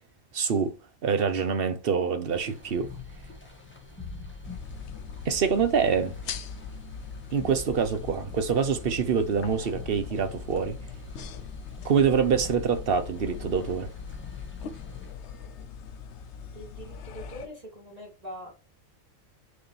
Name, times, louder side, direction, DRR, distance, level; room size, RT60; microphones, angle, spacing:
voice 1, 0.3-0.8 1.0-2.9 5.2-6.2 7.3-10.8 11.8-13.9, right 6 dB, 45° right, 1.0 m, -25 dB
sound 1, 2.3-15.1, left 3 dB, 10° left, 1.7 m, -44 dB
sound 2, 4.4-17.5, left 6 dB, 60° left, 0.9 m, -41 dB
voice 2, 16.5-18.5, equal, 25° right, 2.9 m, -42 dB
6.1 x 5.0 x 3.3 m
omnidirectional pair, 1.5 m